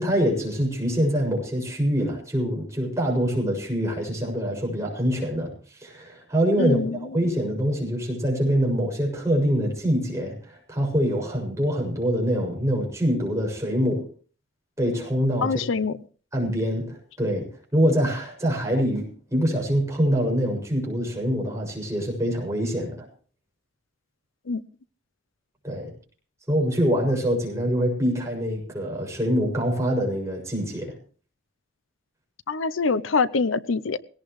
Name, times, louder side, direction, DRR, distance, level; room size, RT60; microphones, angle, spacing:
voice 1, 0.0-14.0 14.8-15.6 16.3-17.5 17.7-23.1 25.6-25.9 26.5-30.9, equal, 15° right, 0 dB, 6.8 m, -25 dB
voice 2, 6.6-7.0 15.4-16.0 24.5-24.6 32.5-34.0, left 4 dB, 80° left, 16 dB, 0.7 m, -24 dB
19.5 x 17.5 x 3.2 m, 0.41 s
head